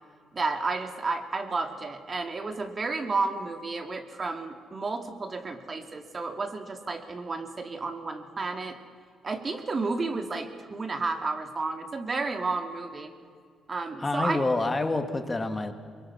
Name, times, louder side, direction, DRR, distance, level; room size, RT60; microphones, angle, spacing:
voice 1, 0.3-8.8 9.2-13.1 13.7-14.4, right 3 dB, 35° right, 7 dB, 2.3 m, -32 dB
voice 2, 14.0-15.7, left 2 dB, 20° left, 7 dB, 2.1 m, -27 dB
24.0 x 22.5 x 5.7 m, 2.1 s
cardioid pair, 90°, 0 cm